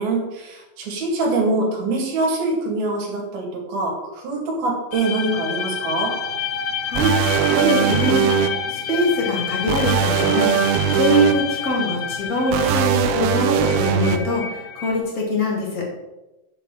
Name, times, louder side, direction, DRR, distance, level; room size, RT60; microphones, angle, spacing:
voice 1, 0.0-6.1, right 2 dB, 60° right, 0 dB, 3.7 m, -24 dB
sound 1, 4.9-15.0, left 6 dB, 70° left, 2.6 m, -29 dB
voice 2, 6.8-7.1 7.5-8.3 8.7-10.5 10.9-15.9, left 1 dB, 25° left, -2 dB, 2.1 m, -23 dB
sound 2, 6.9-8.5 9.7-11.3 12.5-14.2, right 9 dB, 85° right, 2.2 m, -20 dB
8.0 x 5.4 x 7.7 m, 1.0 s
omnidirectional pair, 5.3 m